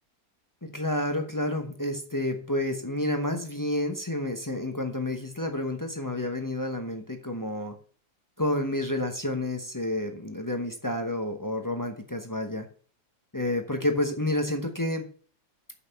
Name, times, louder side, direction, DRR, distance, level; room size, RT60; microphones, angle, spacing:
voice 1, 0.6-7.8 8.4-12.7 13.3-15.1, left 1 dB, 25° left, 5 dB, 0.4 m, -30 dB
6.5 x 5.7 x 6.7 m, 0.43 s
omnidirectional pair, 2.0 m